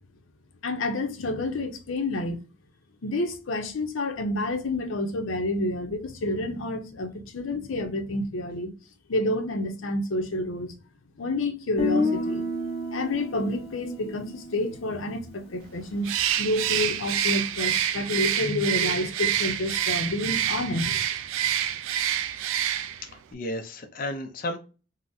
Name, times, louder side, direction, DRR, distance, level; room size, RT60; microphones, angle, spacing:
voice 1, 0.6-2.4 3.0-8.7 9.1-10.7 11.2-12.4 12.9-16.1 16.4-21.0, left 1 dB, 90° left, 0.6 m, -29 dB
Guitar, 11.8-15.7, left 2 dB, 30° left, 1.3 m, -31 dB
Bird, 16.0-23.1, right 10 dB, 85° right, 0.3 m, -27 dB
voice 2, 23.0-24.6, left 1 dB, 45° left, 0.5 m, -33 dB
3.8 x 2.0 x 2.6 m
head